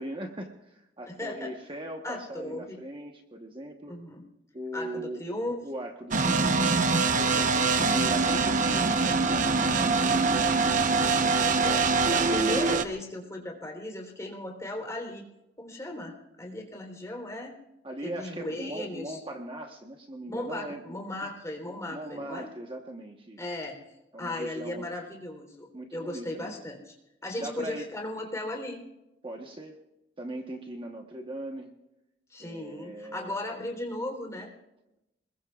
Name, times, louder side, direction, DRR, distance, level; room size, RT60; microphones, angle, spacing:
voice 1, 0.0-4.0 4.5-5.4 5.6-6.9 7.2-11.2 17.8-20.8 21.2-21.3 21.9-23.5 24.1-24.9 25.7-26.6 27.4-27.9 29.2-29.8 30.2-31.7 32.4-33.4, right 1 dB, 30° right, 2 dB, 1.2 m, -40 dB
voice 2, 1.1-1.6 2.0-2.8 3.9-4.2 4.7-5.6 10.8-15.2 15.6-17.6 18.0-19.2 20.3-22.5 23.4-23.8 24.2-26.9 27.2-28.8 32.3-34.5, left 1 dB, 15° left, 2 dB, 3.6 m, -36 dB
sound 1, 6.1-12.8, right 4 dB, 45° right, 0.9 m, -24 dB
28.0 x 21.0 x 2.4 m, 0.91 s
head